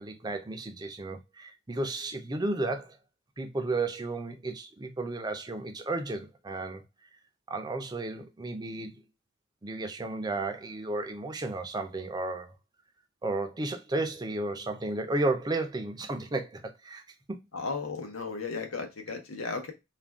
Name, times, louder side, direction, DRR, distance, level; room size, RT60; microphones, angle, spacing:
voice 1, 0.0-3.0 3.4-6.8 7.5-9.0 9.6-12.5 13.2-17.0 17.3-17.4, right 2 dB, 20° right, 0.5 m, -33 dB
voice 2, 17.5-19.7, left 4 dB, 85° left, 0.8 m, -35 dB
2.5 x 2.2 x 3.4 m
head